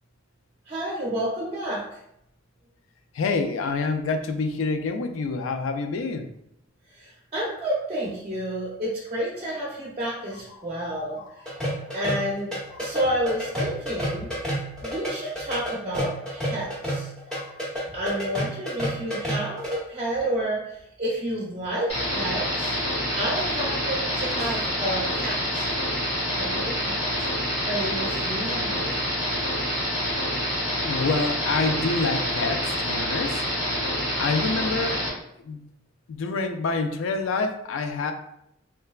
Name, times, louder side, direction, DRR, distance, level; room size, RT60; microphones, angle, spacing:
voice 1, 0.7-1.8 7.0-11.2 11.9-12.5 12.8-14.3 14.8-17.1 17.9-22.7 23.2-25.6 26.4-27.0 27.6-29.0, right 1 dB, 30° right, -5 dB, 0.6 m, -30 dB
voice 2, 3.1-6.3 10.5-10.7 11.1-11.8 12.7-12.9 17.3-17.6 24.4-24.5 30.8-33.4 34.2-35.1 35.4-35.6 36.1-38.1, left 3 dB, 90° left, 6 dB, 0.3 m, -27 dB
sound 1, 11.5-19.8, equal, 5° left, 0.8 m, -29 dB
sound 2, 21.9-35.1, equal, 60° left, 1.0 m, -27 dB
3.2 x 2.1 x 2.3 m, 0.77 s
head